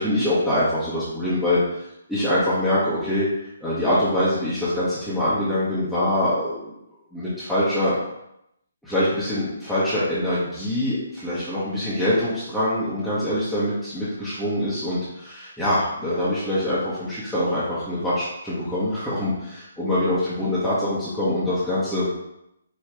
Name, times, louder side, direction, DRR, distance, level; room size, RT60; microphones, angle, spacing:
voice 1, 0.0-3.2 3.6-6.6 7.1-7.9 8.8-22.1, left 1 dB, ahead, -13 dB, 1.0 m, -24 dB
5.0 x 2.7 x 3.4 m, 0.82 s
figure-of-eight pair, 140°, 0 cm